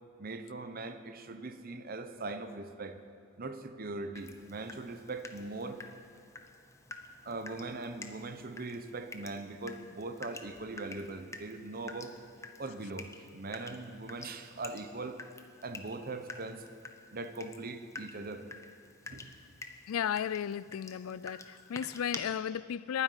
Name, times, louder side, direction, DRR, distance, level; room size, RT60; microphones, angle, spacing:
voice 1, 0.2-3.0 3.4-5.8 7.3-12.1 12.6-15.2 15.6-16.6 17.1-18.5 19.1-19.4, right 3 dB, 45° right, 0.9 m, -41 dB
Water tap faucet / Drip, 4.2-22.2, left 3 dB, 15° left, 0.8 m, -49 dB
voice 2, 19.9-23.0, left 9 dB, 80° left, 0.4 m, -34 dB
11.5 x 10.0 x 9.9 m
head